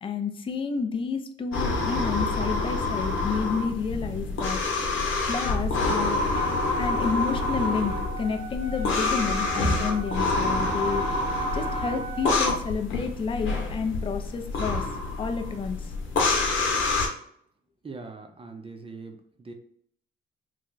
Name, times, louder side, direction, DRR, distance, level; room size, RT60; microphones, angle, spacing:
voice 1, 0.0-4.6 5.2-6.3 6.8-14.9 15.2-15.9, left 5 dB, 25° left, 7 dB, 0.4 m, -30 dB
sound 1, 1.5-17.1, left 3 dB, 80° left, 0.9 m, -27 dB
Wind instrument woodwind instrument, 6.3-12.4, right 6 dB, 65° right, 0.6 m, -38 dB
voice 2, 17.8-19.5, right 3 dB, 30° right, 5 dB, 0.6 m, -41 dB
3.2 x 2.2 x 3.8 m, 0.65 s
cardioid pair, 90°, 20 cm